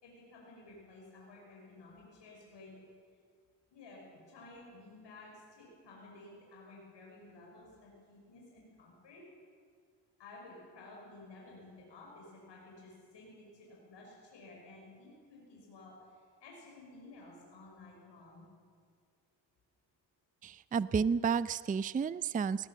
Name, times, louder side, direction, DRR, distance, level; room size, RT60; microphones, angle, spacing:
voice 1, 0.0-2.8 3.7-9.2 10.2-18.5, left 2 dB, 75° left, -2 dB, 6.0 m, -54 dB
voice 2, 20.4-22.7, right 6 dB, 20° right, 17 dB, 0.4 m, -31 dB
19.5 x 18.0 x 7.5 m, 2.1 s
cardioid pair, 85°, 43 cm